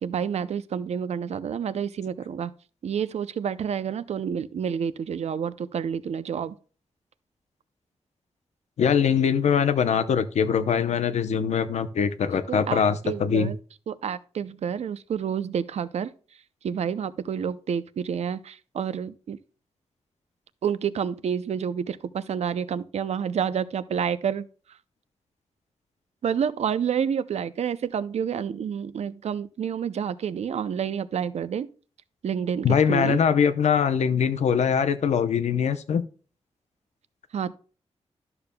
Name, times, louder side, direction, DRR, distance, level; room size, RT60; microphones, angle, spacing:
voice 1, 0.0-2.5 2.8-6.6 12.5-13.6 13.9-16.1 16.6-19.4 20.6-24.5 26.2-31.7 32.2-33.2 37.3-37.5, right 7 dB, 70° right, 0.5 m, -29 dB
voice 2, 8.8-13.5 32.6-36.0, left 7 dB, 80° left, 0.7 m, -22 dB
12.0 x 6.8 x 2.2 m
wide cardioid pair, 155°, 11 cm